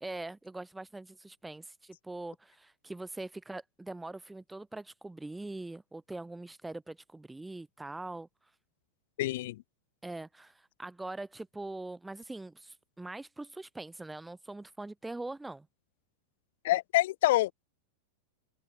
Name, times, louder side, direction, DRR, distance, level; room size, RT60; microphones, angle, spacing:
voice 1, 0.0-8.3 10.0-15.7, right 2 dB, 5° right, 0.9 m, -42 dB
voice 2, 9.2-9.6 16.6-17.5, left 16 dB, 55° left, 0.5 m, -26 dB
open air
figure-of-eight pair, 90°, 0 cm